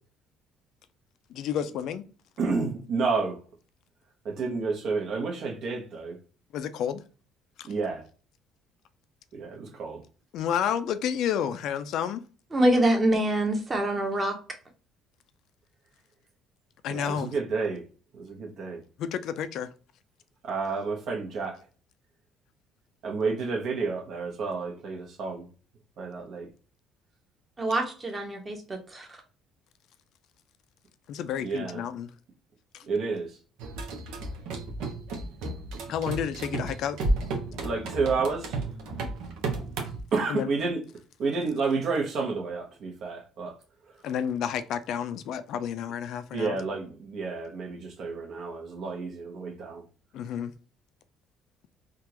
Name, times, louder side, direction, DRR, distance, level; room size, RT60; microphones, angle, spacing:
voice 1, 1.3-2.0 6.5-7.0 7.6-7.7 10.3-12.2 16.8-17.3 19.0-19.7 31.1-32.1 35.9-37.0 40.3-40.5 44.0-46.6 50.1-50.5, left 8 dB, 70° left, 0.4 m, -30 dB
voice 2, 2.4-3.4 4.2-6.2 7.6-8.0 9.3-10.0 16.9-17.8 18.1-18.8 20.4-21.6 23.0-25.5 26.0-26.5 31.4-31.8 32.8-33.3 37.6-38.6 40.1-40.8 41.2-43.5 46.3-49.8, right 4 dB, 60° right, 1.2 m, -30 dB
voice 3, 12.5-14.3 27.6-29.2, right 1 dB, 20° right, 1.1 m, -25 dB
sound 1, 33.6-40.0, right 2 dB, 80° right, 0.9 m, -33 dB
3.6 x 2.4 x 2.8 m
cardioid pair, 115°, 0 cm